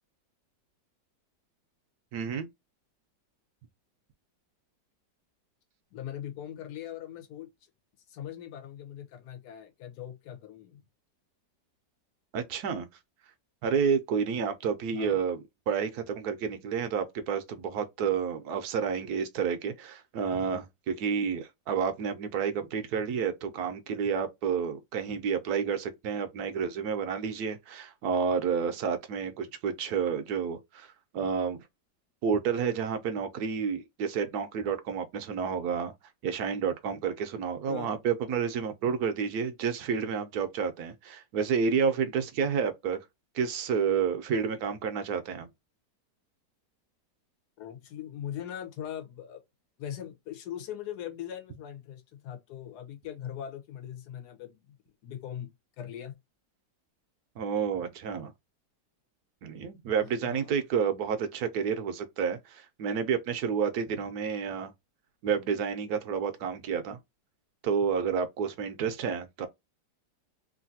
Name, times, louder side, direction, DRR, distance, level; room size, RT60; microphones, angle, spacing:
voice 1, 2.1-2.5 12.3-12.9 13.6-15.4 15.7-31.6 32.2-35.9 36.2-43.0 43.3-45.5 57.4-58.3 59.4-64.7 65.2-67.0 67.6-69.5, right 6 dB, 70° right, 1.0 m, -30 dB
voice 2, 5.9-7.5 8.1-10.9 14.9-15.2 37.7-37.9 47.6-49.4 49.8-54.7 55.0-56.2 60.0-60.5, left 10 dB, 70° left, 1.3 m, -41 dB
3.1 x 2.5 x 2.6 m
omnidirectional pair, 1.9 m